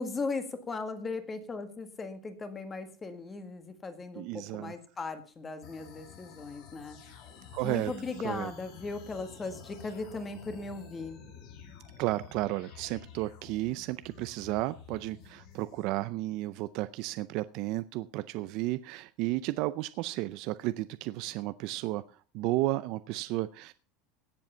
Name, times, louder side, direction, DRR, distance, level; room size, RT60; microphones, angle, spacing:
voice 1, 0.0-7.0 7.6-11.2, left 3 dB, 15° left, 9 dB, 1.7 m, -38 dB
voice 2, 4.2-4.7 7.5-7.9 8.2-8.5 12.0-22.0 22.3-23.7, right 17 dB, 50° right, 14 dB, 0.5 m, -33 dB
sound 1, 5.6-15.8, left 7 dB, 50° left, 7.2 m, -51 dB
17.0 x 7.8 x 5.6 m, 0.39 s
supercardioid pair, 160°, 0 cm